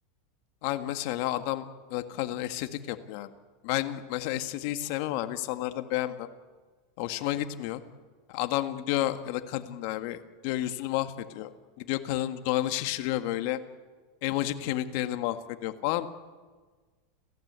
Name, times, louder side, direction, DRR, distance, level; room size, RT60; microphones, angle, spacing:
voice 1, 0.6-3.3 3.6-6.3 7.0-7.8 8.3-11.5 11.8-13.6 14.2-16.1, left 14 dB, 60° left, 9 dB, 1.8 m, -31 dB
29.5 x 15.5 x 8.3 m, 1.4 s
supercardioid pair, 130°, 0 cm